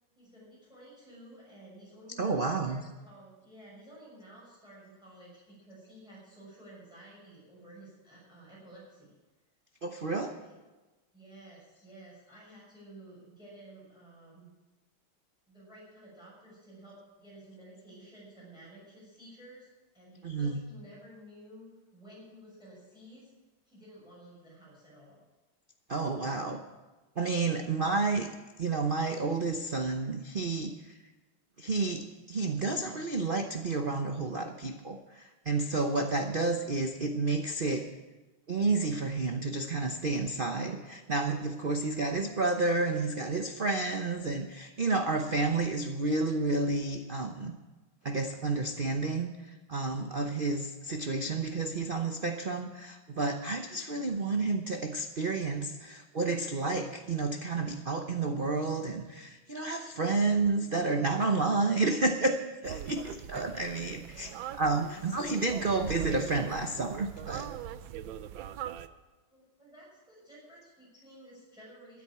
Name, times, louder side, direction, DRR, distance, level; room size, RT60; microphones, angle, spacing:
voice 1, 0.2-9.2 10.1-10.6 11.1-14.5 15.5-19.7 19.9-21.7 21.9-23.3 23.6-25.2 63.9-64.6 64.9-65.4 69.3-72.0, right 1 dB, ahead, -6 dB, 6.1 m, -53 dB
voice 2, 2.2-2.8 9.8-10.3 20.2-20.6 25.9-26.6 27.2-28.3 28.6-30.9 31.6-37.9 38.5-47.5 48.0-67.5, right 3 dB, 55° right, 5 dB, 0.5 m, -30 dB
sound 1, 62.6-68.9, right 10 dB, 70° right, 1.4 m, -41 dB
13.5 x 10.0 x 8.6 m, 1.2 s
omnidirectional pair, 2.3 m